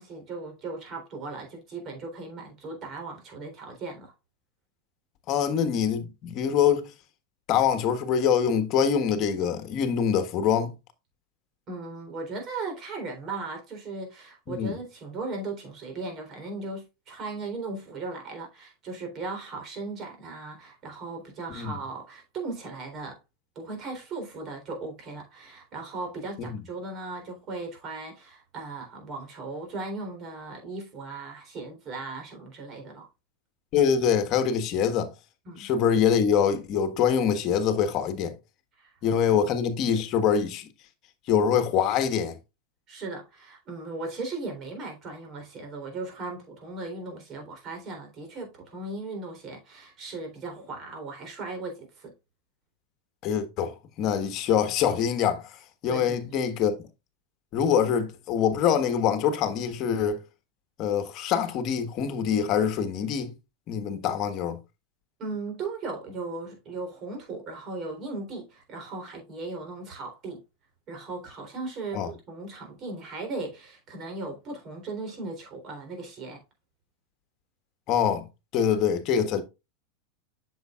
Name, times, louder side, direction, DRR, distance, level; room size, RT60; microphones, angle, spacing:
voice 1, 0.0-4.1 11.7-23.2 23.6-33.1 35.4-35.7 38.8-38.9 42.9-52.1 55.9-56.4 65.2-70.4 70.9-76.4, right 3 dB, 40° right, 3.6 m, -37 dB
voice 2, 5.3-6.9 7.5-10.7 14.5-14.7 21.5-21.8 26.4-26.6 33.7-35.1 35.6-38.3 39.0-40.7 41.3-42.4 53.2-55.5 55.8-56.7 57.5-60.2 60.8-63.3 63.7-64.6 71.9-72.1 77.9-78.2 78.5-79.4, left 8 dB, 45° left, 1.4 m, -24 dB
7.9 x 6.6 x 2.4 m
hypercardioid pair, 105°, 0 cm